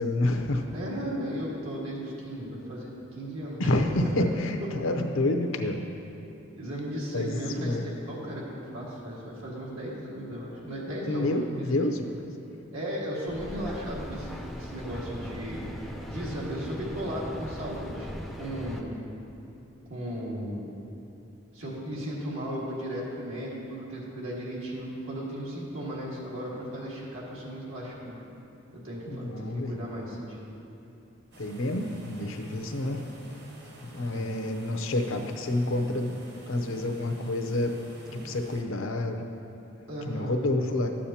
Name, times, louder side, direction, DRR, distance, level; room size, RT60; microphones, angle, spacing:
voice 1, 0.0-0.7 3.6-5.8 7.1-7.9 11.1-12.1 29.1-29.8 31.4-33.1 33.8-36.2 36.5-37.8 38.1-39.3 40.1-40.9, left 1 dB, 75° left, 5 dB, 0.7 m, -28 dB
voice 2, 0.7-3.6 6.5-11.3 11.6-12.0 12.7-19.0 19.9-20.7 21.5-28.2 28.8-30.5 34.1-34.3 39.9-40.4, equal, 80° right, -5 dB, 1.8 m, -36 dB
Mechanical fan, 13.3-18.8, equal, ahead, 0.4 m, -39 dB
sound 1, 31.3-38.6, right 1 dB, 55° right, 1.1 m, -49 dB
13.0 x 8.6 x 2.8 m, 2.9 s
head